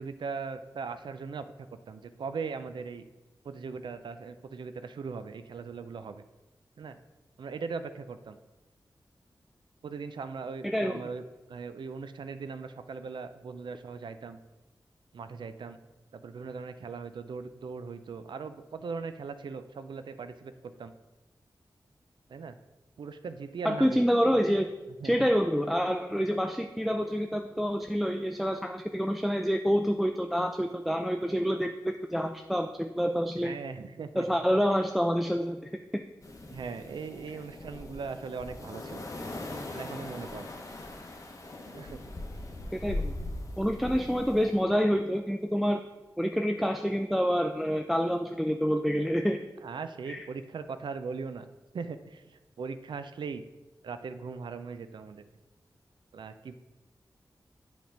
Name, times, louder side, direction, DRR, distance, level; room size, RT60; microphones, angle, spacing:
voice 1, 0.0-1.5 1.9-3.0 3.4-6.2 6.8-7.0 7.4-8.4 9.8-11.2 11.5-14.4 15.1-15.8 16.1-20.9 22.3-22.6 23.0-23.9 25.0-25.3 33.4-34.3 36.5-39.1 39.7-40.5 41.7-42.0 42.6-42.7 49.6-51.5 51.7-53.4 53.8-55.2 56.1-56.6, right 5 dB, 75° right, 10 dB, 0.4 m, -39 dB
voice 2, 10.6-11.0 23.6-24.7 25.0-33.5 34.2-35.6 35.9-36.0 42.7-43.1 43.6-45.8 46.2-49.5 50.1-50.3, equal, ahead, 5 dB, 0.4 m, -27 dB
sound 1, 36.2-44.6, left 2 dB, 45° left, 0.9 m, -40 dB
7.7 x 3.5 x 5.1 m, 1.1 s
cardioid pair, 60°, 8 cm